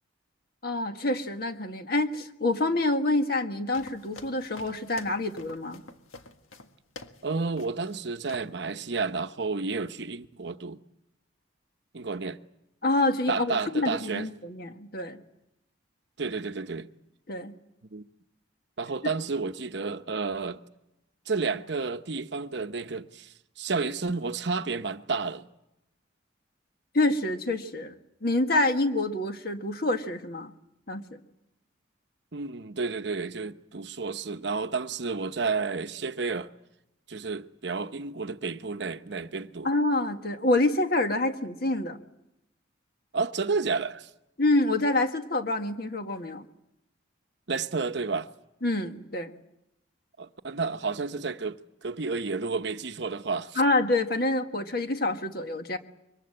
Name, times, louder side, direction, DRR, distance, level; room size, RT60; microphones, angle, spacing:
voice 1, 0.6-5.8 12.8-15.2 17.3-17.5 26.9-27.9 28.2-30.5 30.9-31.2 39.6-42.0 44.4-46.4 48.6-49.3 53.6-55.8, left 2 dB, 50° left, 1.6 m, -27 dB
sound 1, 3.7-7.3 7.6-8.0 8.3-8.6, left 3 dB, 85° left, 1.7 m, -47 dB
voice 2, 7.2-10.8 11.9-12.4 13.3-14.3 16.2-16.9 17.9-18.0 18.8-20.6 21.3-25.5 32.3-36.5 37.1-39.7 43.1-44.1 47.5-48.3 50.2-53.6, right 4 dB, 60° right, 0.9 m, -31 dB
26.5 x 24.0 x 7.8 m
head